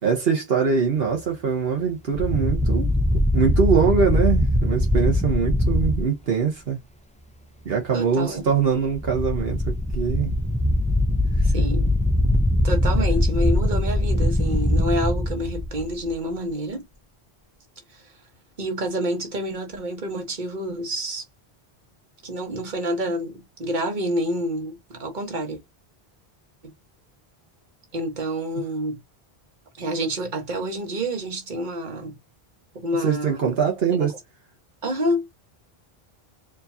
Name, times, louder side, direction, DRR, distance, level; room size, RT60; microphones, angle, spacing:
voice 1, 0.0-2.9 3.3-6.8 7.6-10.3 11.4-11.5 33.0-34.1, right 6 dB, 70° right, 1.2 m, -23 dB
sound 1, 2.1-6.0 8.8-16.1, left 1 dB, 10° left, 0.5 m, -22 dB
voice 2, 7.9-8.4 11.5-12.0 12.6-16.8 17.9-18.1 18.6-21.2 22.2-25.6 27.9-29.0 29.8-32.1 32.7-33.5 34.0-34.1 34.8-35.3, equal, 50° right, 1.4 m, -28 dB
4.5 x 3.0 x 2.7 m
omnidirectional pair, 1.0 m